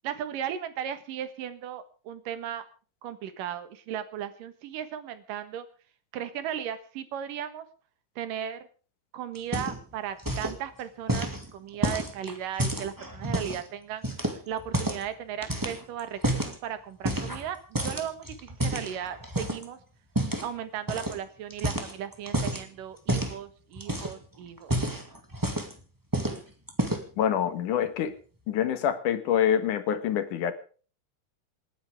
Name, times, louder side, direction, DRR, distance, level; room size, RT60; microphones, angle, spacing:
voice 1, 0.0-2.6 3.0-5.7 6.1-7.7 8.2-8.7 9.1-19.8 20.4-24.7, right 9 dB, 90° right, 11 dB, 3.1 m, -36 dB
sound 1, 9.3-9.9 10.2-10.6 11.1-13.6 14.0-15.1 15.4-16.6 17.0-17.5 17.7-19.6 20.1-20.5 20.9-21.2 21.5-22.6 23.1-23.4 23.8-24.2 24.6-25.8 26.1-26.4 26.7-27.2, right 1 dB, 10° right, 1.4 m, -29 dB
voice 2, 27.2-28.1 28.5-30.5, left 9 dB, 75° left, 10 dB, 2.9 m, -26 dB
27.5 x 10.0 x 3.5 m, 0.39 s
omnidirectional pair, 3.7 m